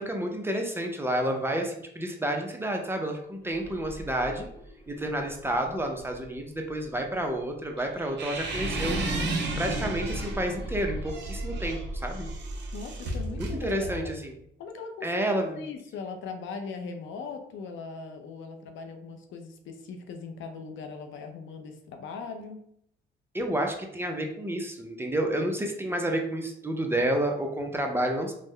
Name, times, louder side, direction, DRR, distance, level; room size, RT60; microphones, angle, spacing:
voice 1, 0.0-4.5 4.9-9.0 9.6-12.3 13.4-14.3 15.0-15.6 23.3-28.3, right 1 dB, 10° right, 2 dB, 0.5 m, -30 dB
sound 1, 3.4-6.4 6.8-6.9 8.3-13.4, right 1 dB, 15° left, 1.2 m, -35 dB
sound 2, 7.8-10.4 10.9-14.2, right 2 dB, 60° right, 0.6 m, -37 dB
voice 2, 12.7-14.2 14.6-22.6, left 5 dB, 80° left, 5 dB, 0.5 m, -40 dB
3.6 x 2.1 x 3.1 m, 0.72 s
cardioid pair, 90°, 20 cm